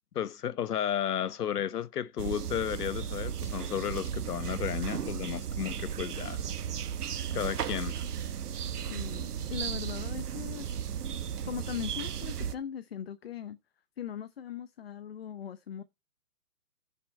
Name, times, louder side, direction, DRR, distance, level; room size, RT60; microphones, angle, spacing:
voice 1, 0.1-6.4 7.3-8.0, left 9 dB, 75° left, 1.0 m, -33 dB
sound 1, 2.2-12.5, right 8 dB, 75° right, 1.2 m, -35 dB
voice 2, 8.7-10.8 11.4-13.6 14.0-15.8, left 9 dB, 40° left, 0.7 m, -40 dB
14.5 x 5.6 x 4.4 m
hypercardioid pair, 165°, 46 cm